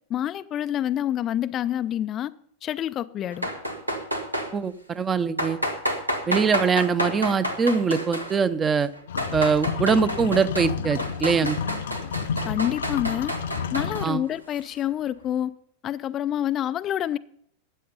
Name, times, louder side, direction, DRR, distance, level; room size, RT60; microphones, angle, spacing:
voice 1, 0.1-2.3 2.6-3.5 12.4-13.3 13.7-15.5 15.8-17.2, left 11 dB, 30° left, 0.4 m, -27 dB
sound 1, 3.3-4.5 5.4-8.4 8.9-10.7 11.0-14.1, equal, 90° right, 1.7 m, -29 dB
voice 2, 4.5-5.6 6.3-8.9 9.3-11.6 14.0-14.2, right 5 dB, 20° right, 0.7 m, -23 dB
sound 2, 9.1-14.1, left 7 dB, 60° left, 0.7 m, -31 dB
13.0 x 9.4 x 5.5 m
figure-of-eight pair, 90°, 0 cm